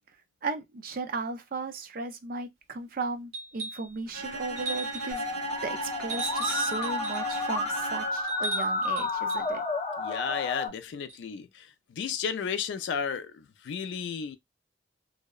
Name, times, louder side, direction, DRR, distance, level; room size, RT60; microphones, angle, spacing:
voice 1, 0.4-5.2 5.6-9.6, right 4 dB, 50° right, 0.5 m, -36 dB
sound 1, 3.3-3.9 4.6-5.2 6.1-7.5 8.3-9.5 11.1-11.2, right 3 dB, 35° right, 1.0 m, -37 dB
Bowed string instrument, 4.1-8.4, right 3 dB, 70° right, 1.5 m, -37 dB
Musical instrument, 5.1-10.7, left 3 dB, 30° left, 0.6 m, -31 dB
voice 2, 10.0-11.7 12.0-14.4, left 6 dB, 75° left, 0.3 m, -33 dB
2.7 x 2.0 x 2.2 m
head